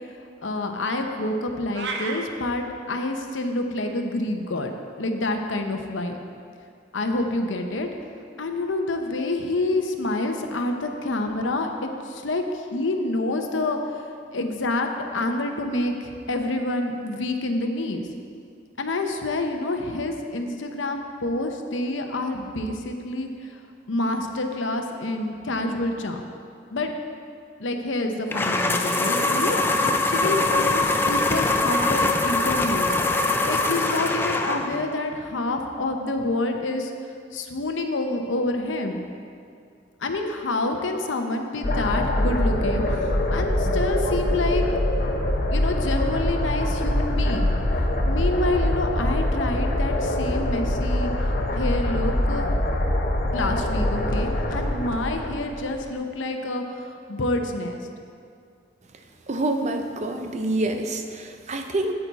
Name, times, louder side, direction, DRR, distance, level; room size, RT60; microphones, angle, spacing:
voice 1, 0.4-4.7 5.0-6.2 6.9-7.9 8.4-14.1 14.3-18.1 18.8-23.6 23.9-26.2 26.7-26.9 27.6-32.9 33.5-36.9 37.3-39.0 40.0-44.6 45.5-47.5 48.0-51.1 51.6-52.5 53.3-57.8, left 2 dB, 85° left, 5 dB, 0.8 m, -28 dB
sound 1, 1.7-2.2, right 4 dB, 65° right, 0.8 m, -30 dB
sound 2, 28.3-34.9, left 2 dB, 10° left, 0.4 m, -23 dB
sound 3, 41.6-55.9, left 1 dB, 45° left, 0.8 m, -24 dB
voice 2, 59.3-61.9, right 2 dB, 35° right, 5 dB, 0.6 m, -27 dB
9.2 x 8.7 x 4.1 m, 2.3 s
head